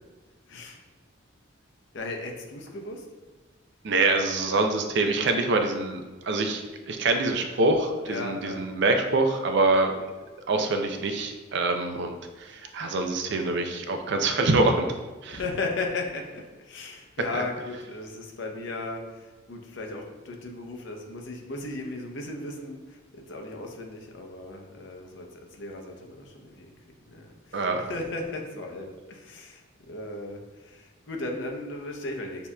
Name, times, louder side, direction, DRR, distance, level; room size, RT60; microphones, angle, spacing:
voice 1, 0.5-0.8 1.9-3.1 7.3-7.4 8.0-8.6 15.3-26.8 27.0-32.5, left 2 dB, 60° left, 1 dB, 0.6 m, -36 dB
voice 2, 3.8-6.6 6.9-10.0 10.5-14.9 15.2-15.4 17.3-17.4 27.5-27.9, right 2 dB, 55° right, 5 dB, 0.4 m, -25 dB
6.7 x 2.8 x 2.2 m, 1.3 s
head